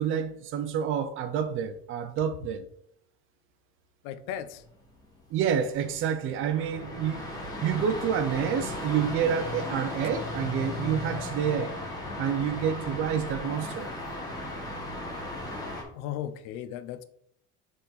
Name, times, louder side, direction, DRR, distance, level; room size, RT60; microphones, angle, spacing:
voice 1, 0.0-2.7 5.3-7.2 7.6-11.7 12.2-13.9, right 8 dB, 40° right, 0.6 m, -28 dB
voice 2, 4.0-4.6 15.9-17.0, left 10 dB, 75° left, 0.7 m, -36 dB
sound 1, 4.3-15.8, left 1 dB, 10° left, 1.4 m, -36 dB
6.8 x 3.9 x 4.0 m
cardioid pair, 165°, 33 cm